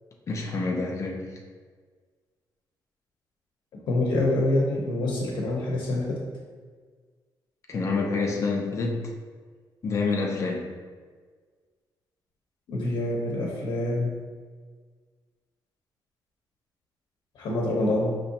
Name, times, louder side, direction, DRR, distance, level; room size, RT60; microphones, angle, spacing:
voice 1, 0.3-1.3 7.7-9.1 9.8-10.7, left 3 dB, 40° left, 0 dB, 0.6 m, -27 dB
voice 2, 3.7-6.3 12.7-14.2 17.3-18.2, left 1 dB, 75° left, -3 dB, 0.8 m, -26 dB
5.5 x 3.1 x 2.8 m, 1.5 s
wide cardioid pair, 160°, 8 cm